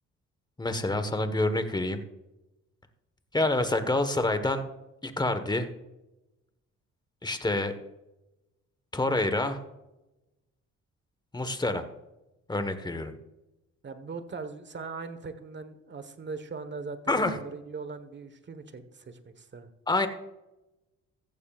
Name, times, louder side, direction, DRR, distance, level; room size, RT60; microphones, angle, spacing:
voice 1, 0.6-2.0 3.3-4.6 5.0-5.7 7.2-7.7 8.9-9.6 11.3-11.8 12.5-13.1 17.1-17.4 19.9-20.1, left 2 dB, 15° left, 8 dB, 1.3 m, -27 dB
voice 2, 13.8-19.7, right 4 dB, 35° right, 10 dB, 1.3 m, -40 dB
14.5 x 14.5 x 2.5 m, 0.98 s
cardioid pair, 90°, 30 cm